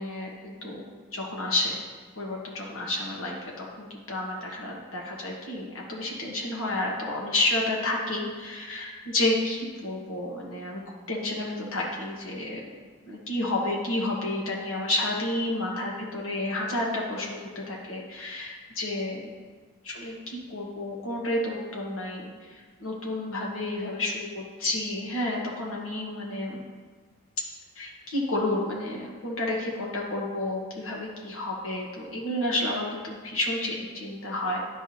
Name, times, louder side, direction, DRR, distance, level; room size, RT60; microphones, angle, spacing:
voice 1, 0.0-1.8 2.2-12.8 13.1-19.3 19.8-26.6 27.7-34.6, left 1 dB, 65° left, -2 dB, 1.3 m, -30 dB
10.5 x 4.7 x 2.8 m, 1.5 s
head